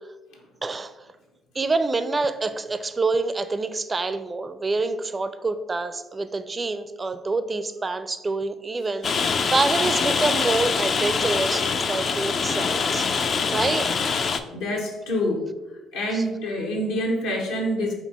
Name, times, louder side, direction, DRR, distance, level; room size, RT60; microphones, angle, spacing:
voice 1, 1.5-13.1 13.5-13.9 16.1-16.2, right 3 dB, 30° right, 11 dB, 0.4 m, -26 dB
Rain, 9.0-14.4, left 5 dB, 50° left, 0.3 m, -24 dB
voice 2, 14.5-15.5 15.9-17.9, equal, 75° left, -1 dB, 0.9 m, -26 dB
4.3 x 2.8 x 4.0 m, 1.1 s
hypercardioid pair, 50°, 0 cm